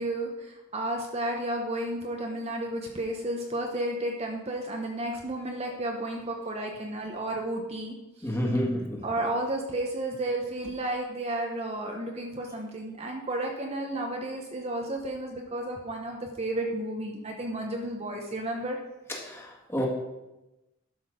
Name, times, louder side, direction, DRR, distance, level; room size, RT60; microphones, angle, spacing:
voice 1, 0.0-8.3 9.0-18.8, right 1 dB, 30° right, 1 dB, 1.0 m, -32 dB
voice 2, 8.2-9.0 19.2-19.9, equal, 10° left, -2 dB, 1.9 m, -29 dB
12.0 x 6.1 x 5.1 m, 1.0 s
head